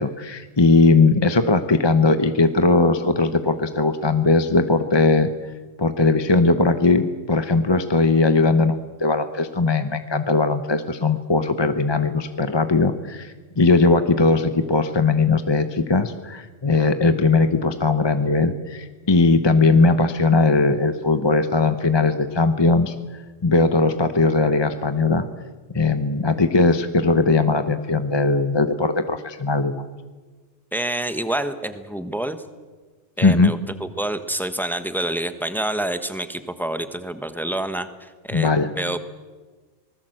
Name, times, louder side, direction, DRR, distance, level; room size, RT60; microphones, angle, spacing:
voice 1, 0.0-5.3 5.8-22.9 23.4-25.2 25.7-29.8 33.2-33.5 38.3-38.7, left 3 dB, 25° left, 9 dB, 0.9 m, -19 dB
voice 2, 30.7-32.4 33.2-39.0, right 1 dB, ahead, 10 dB, 1.1 m, -27 dB
26.0 x 19.5 x 7.8 m, 1.4 s
omnidirectional pair, 1.3 m